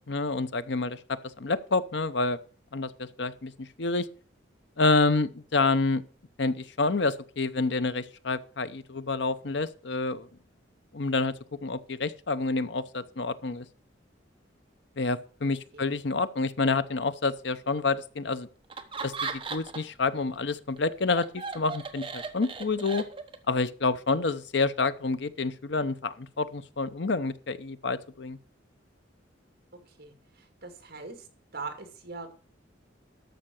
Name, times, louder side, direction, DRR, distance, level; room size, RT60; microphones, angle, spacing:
voice 1, 0.1-1.0 1.4-2.4 2.7-4.1 4.8-6.0 6.4-10.3 10.9-11.3 11.6-13.7 15.0-18.5 19.0-23.0 23.5-28.4, left 3 dB, 65° left, 13 dB, 0.7 m, -28 dB
Laughter, 18.7-20.0 20.3-23.5, right 4 dB, 25° right, 1.1 m, -37 dB
voice 2, 29.9-31.3 31.5-32.3, right 4 dB, 55° right, 6 dB, 2.4 m, -41 dB
13.0 x 5.8 x 6.5 m, 0.42 s
head